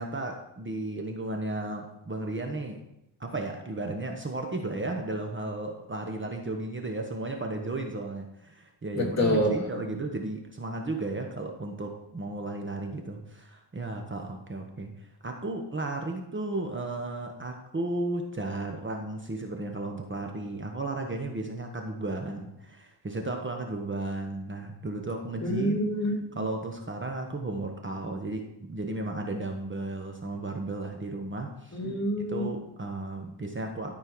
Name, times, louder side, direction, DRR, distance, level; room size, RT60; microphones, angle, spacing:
voice 1, 0.0-2.8 3.2-14.9 15.2-25.8 26.3-31.8 32.3-33.9, right 2 dB, 25° right, 3 dB, 1.2 m, -34 dB
voice 2, 8.9-9.5 9.9-10.0 25.4-26.4 31.7-32.4, equal, 35° left, -1 dB, 2.6 m, -27 dB
13.0 x 4.4 x 6.2 m, 0.84 s
cardioid pair, 110°, 45 cm